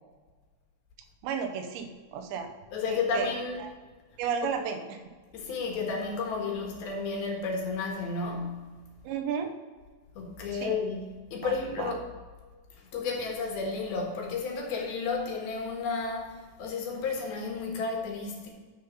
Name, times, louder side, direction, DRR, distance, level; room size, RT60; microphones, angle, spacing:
voice 1, 1.2-2.5 2.9-3.3 3.6-3.7 4.2-5.0 9.0-9.5 10.6-10.8 11.4-11.9, right 7 dB, 80° right, 3.1 m, -33 dB
voice 2, 2.7-3.7 5.3-8.6 10.2-12.1 12.7-18.5, left 4 dB, 65° left, 3.1 m, -32 dB
12.0 x 5.1 x 5.5 m
omnidirectional pair, 5.1 m